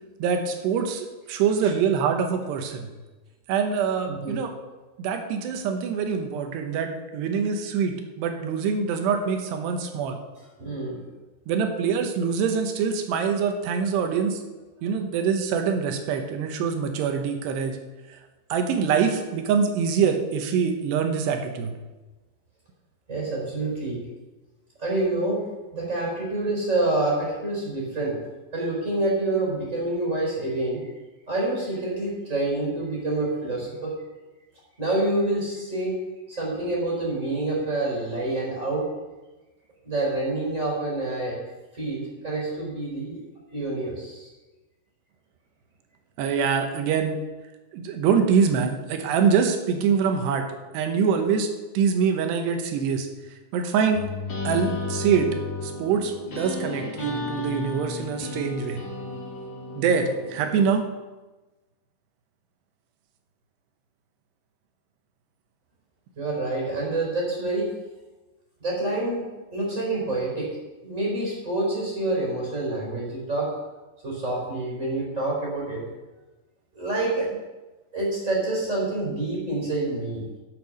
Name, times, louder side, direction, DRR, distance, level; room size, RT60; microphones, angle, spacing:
voice 1, 0.2-2.9 3.5-4.5 5.0-10.2 11.5-14.4 14.8-17.8 18.1-18.2 18.5-21.7 46.2-47.2 47.7-50.5 50.7-51.5 51.7-53.1 53.5-54.1 54.4-55.3 55.6-58.8 59.8-60.9, right 6 dB, 75° right, 5 dB, 3.0 m, -24 dB
voice 2, 10.6-11.0 23.1-24.0 24.8-25.4 25.7-28.2 28.5-30.8 31.3-33.9 34.8-36.0 36.3-38.9 39.8-41.4 41.7-43.2 43.5-44.3 66.2-67.7 68.6-70.5 70.8-73.5 74.0-75.8 76.7-77.3 77.9-80.2, right 2 dB, 15° right, -3 dB, 4.1 m, -27 dB
sound 1, 53.9-60.7, left 3 dB, 40° left, 4.0 m, -33 dB
11.0 x 7.7 x 6.5 m, 1.1 s
omnidirectional pair, 5.2 m